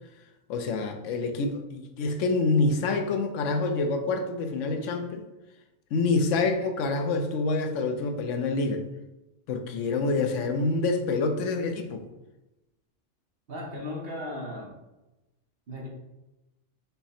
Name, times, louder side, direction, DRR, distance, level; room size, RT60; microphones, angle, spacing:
voice 1, 0.5-5.3 5.9-8.8 9.5-12.0, left 3 dB, 75° left, 6 dB, 0.9 m, -27 dB
voice 2, 13.5-14.7 15.7-15.9, left 1 dB, 50° right, -3 dB, 1.2 m, -36 dB
5.6 x 2.2 x 4.2 m, 0.98 s
omnidirectional pair, 1.4 m